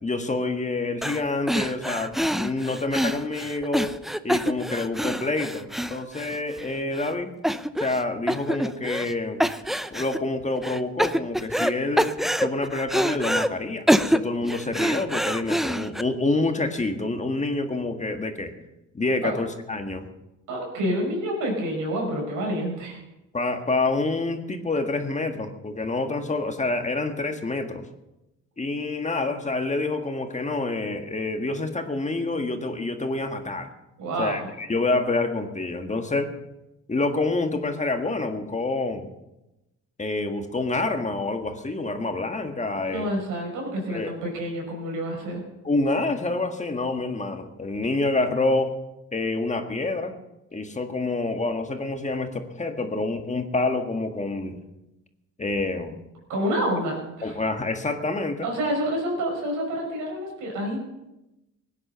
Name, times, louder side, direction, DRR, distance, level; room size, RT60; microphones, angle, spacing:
voice 1, 0.0-4.0 4.2-7.3 7.8-9.4 9.9-18.5 18.9-20.0 23.3-27.8 28.6-33.7 34.2-36.3 36.9-39.1 40.0-43.1 43.9-44.1 45.6-48.7 49.1-50.1 50.5-54.6 55.4-55.9 57.2-58.5, left 2 dB, 25° left, 5 dB, 1.7 m, -27 dB
sound 1, 1.0-1.2 1.5-6.7 7.0-7.1 7.4-8.0 8.3-9.1 9.4-10.2 10.6-11.7 12.0-13.5 13.9-16.0, equal, ahead, 0.6 m, -25 dB
voice 2, 20.5-23.0 34.0-34.5 42.8-45.4 56.3-57.4 58.4-60.8, right 1 dB, 90° right, 0 dB, 5.9 m, -28 dB
18.0 x 10.0 x 6.8 m, 0.97 s
cardioid pair, 90°, 30 cm